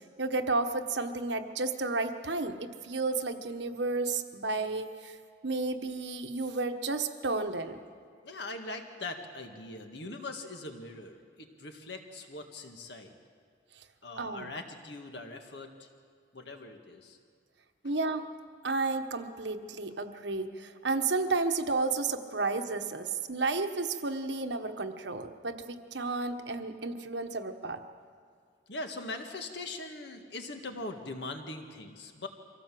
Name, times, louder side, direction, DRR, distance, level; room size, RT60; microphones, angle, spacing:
voice 1, 0.2-5.2 5.4-7.8 13.8-13.9 14.2-14.5 17.8-18.3 18.6-27.8, right 3 dB, 70° right, 7 dB, 1.3 m, -32 dB
voice 2, 8.0-13.1 14.0-15.9 16.3-17.2 28.7-32.3, left 2 dB, 65° left, 5 dB, 1.9 m, -41 dB
25.0 x 16.5 x 7.7 m, 2.1 s
head